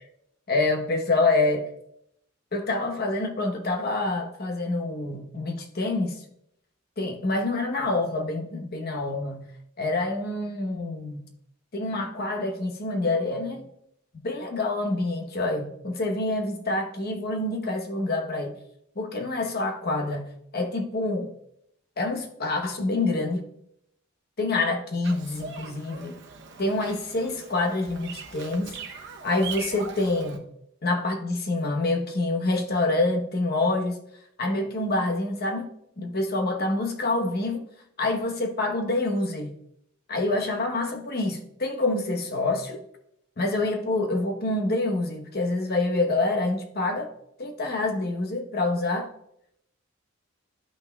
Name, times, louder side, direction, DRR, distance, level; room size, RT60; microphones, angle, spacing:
voice 1, 0.5-1.7 2.5-6.2 7.0-9.4 9.8-11.3 11.7-13.7 14.2-18.5 19.0-20.3 20.5-21.3 22.0-23.4 24.4-26.2 26.6-28.8 29.2-30.4 30.8-34.0 34.4-35.7 36.0-37.6 38.0-39.5 40.1-42.8 43.4-47.1 47.4-49.1, left 2 dB, 50° left, 1.0 m, -26 dB
Bird vocalization bird call bird song, 25.0-30.4, right 5 dB, 60° right, 0.8 m, -41 dB
12.5 x 5.6 x 2.3 m
head